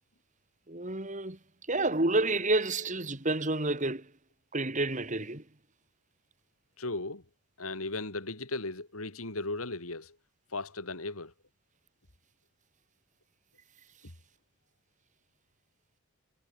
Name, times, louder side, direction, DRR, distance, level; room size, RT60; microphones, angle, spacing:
voice 1, 0.7-1.4 1.7-4.1 4.5-5.4, right 2 dB, 35° right, 2.4 m, -29 dB
voice 2, 6.8-7.2 7.6-10.2 10.5-11.3, left 2 dB, 80° left, 3.5 m, -36 dB
head